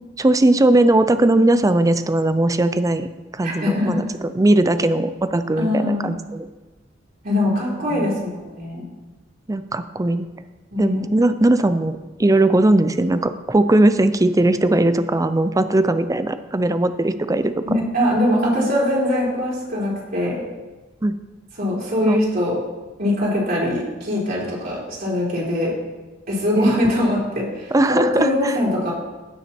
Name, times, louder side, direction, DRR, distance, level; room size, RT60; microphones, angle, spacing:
voice 1, 0.2-3.1 3.3-4.0 4.3-6.5 7.9-8.1 9.5-10.3 10.8-17.6 18.4-18.7 21.0-21.1 22.0-22.2 26.6-26.8 27.7-28.6, right 1 dB, 20° right, 11 dB, 0.5 m, -19 dB
voice 2, 3.4-4.0 5.6-6.1 7.2-8.8 10.7-11.0 17.7-20.4 21.6-22.5 23.0-25.7 26.3-28.9, left 1 dB, 55° right, -7 dB, 3.8 m, -22 dB
16.0 x 6.1 x 4.4 m, 1.2 s
head